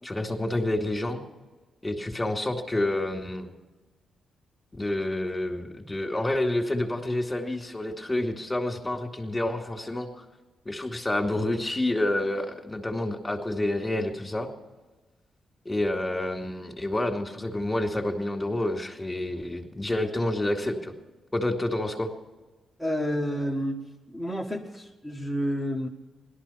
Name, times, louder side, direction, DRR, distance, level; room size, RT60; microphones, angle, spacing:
voice 1, 0.0-1.2 1.8-3.5 4.7-10.2 10.6-14.5 15.6-20.9 21.3-22.1, left 1 dB, 15° left, 3 dB, 2.6 m, -28 dB
voice 2, 22.8-23.8 24.1-25.9, equal, 5° right, -2 dB, 1.5 m, -29 dB
17.5 x 12.5 x 5.8 m, 1.2 s
cardioid pair, 85°, 0 cm